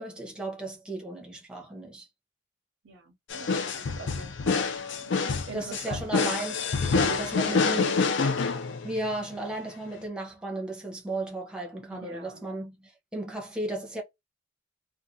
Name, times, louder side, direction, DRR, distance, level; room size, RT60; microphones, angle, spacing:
voice 1, 0.0-2.1 5.5-6.8 7.2-8.1 8.8-14.0, right 2 dB, 5° right, 0.7 m, -35 dB
voice 2, 2.8-4.8 5.1-6.3 6.9-8.1 8.7-8.9 11.9-12.5, right 2 dB, 85° right, 0.5 m, -41 dB
sound 1, 3.3-9.1, left 4 dB, 70° left, 0.4 m, -27 dB
2.4 x 2.3 x 2.7 m
head